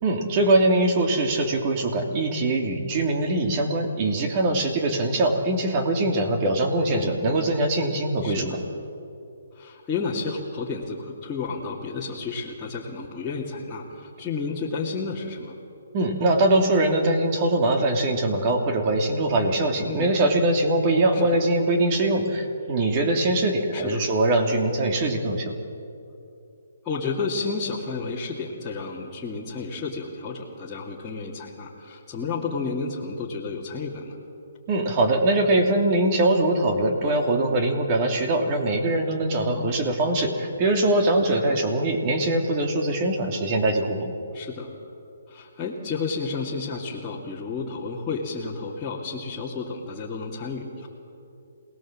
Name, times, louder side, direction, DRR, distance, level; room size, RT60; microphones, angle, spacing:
voice 1, 0.0-8.6 15.9-25.5 34.7-44.1, right 2 dB, 30° right, 3 dB, 2.9 m, -22 dB
voice 2, 6.9-7.2 8.2-8.6 9.5-15.6 19.8-20.1 21.1-21.4 23.7-24.1 26.8-34.2 39.6-39.8 41.4-41.6 44.3-44.7 45.3-50.9, left 4 dB, 10° left, -9 dB, 2.4 m, -31 dB
27.5 x 19.5 x 7.5 m, 2.7 s
hypercardioid pair, 160°, 0 cm